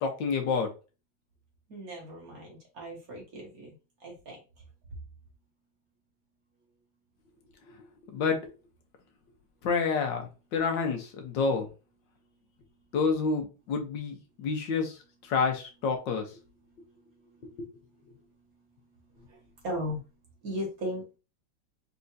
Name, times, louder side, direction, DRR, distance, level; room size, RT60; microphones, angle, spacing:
voice 1, 0.0-0.7 8.1-8.4 9.6-11.7 12.9-16.3, left 5 dB, 65° left, 4 dB, 1.5 m, -29 dB
voice 2, 1.7-3.7 4.0-4.4 19.6-20.0 20.4-21.2, equal, 45° right, -2 dB, 1.8 m, -36 dB
4.2 x 3.5 x 2.7 m, 0.32 s
omnidirectional pair, 2.4 m